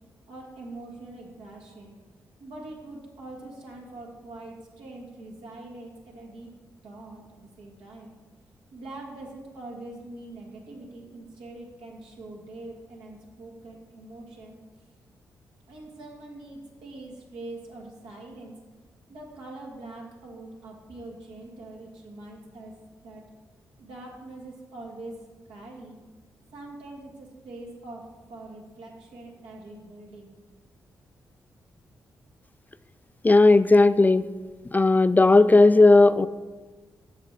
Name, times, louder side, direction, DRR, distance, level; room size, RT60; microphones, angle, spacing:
voice 1, 0.3-1.9 2.4-6.5 6.8-8.1 8.7-14.6 15.7-18.5 19.1-22.7 23.0-23.2 23.8-25.2 25.5-26.0 26.5-30.4, right 2 dB, 80° right, -2 dB, 1.7 m, -43 dB
voice 2, 33.2-34.3 34.7-36.3, left 2 dB, 20° left, 14 dB, 0.3 m, -16 dB
6.6 x 6.1 x 5.5 m, 1.3 s
supercardioid pair, 45°, 8 cm